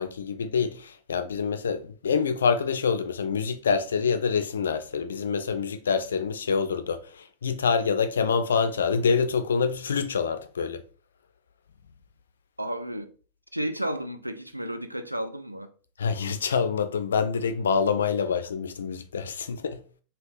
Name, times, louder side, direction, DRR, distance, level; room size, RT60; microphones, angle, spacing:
voice 1, 0.0-7.0 7.4-10.8 16.0-19.8, left 5 dB, 65° left, 0.3 m, -26 dB
voice 2, 12.6-13.1 13.5-15.7, right 1 dB, 85° right, 0.3 m, -32 dB
3.4 x 2.8 x 2.5 m
figure-of-eight pair, 90°, 0 cm